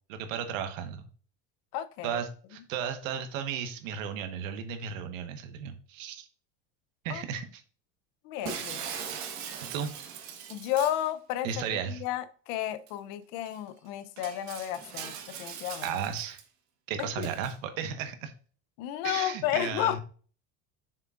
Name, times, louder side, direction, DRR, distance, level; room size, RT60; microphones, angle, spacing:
voice 1, 0.1-1.1 2.0-6.3 7.0-7.6 8.5-8.7 9.7-9.9 11.4-12.0 15.8-16.4 16.9-18.3 19.0-20.0, right 7 dB, 85° right, 8 dB, 1.3 m, -34 dB
voice 2, 1.7-2.2 7.1-7.2 8.2-8.9 10.5-15.9 17.0-17.3 18.8-20.0, left 11 dB, 60° left, 13 dB, 0.7 m, -32 dB
Shatter, 8.4-11.1 12.9-13.0 13.4-13.6 14.2-16.4 17.2-17.5, right 7 dB, 50° right, 1.5 m, -40 dB
7.4 x 6.6 x 2.5 m, 0.42 s
supercardioid pair, 150°, 38 cm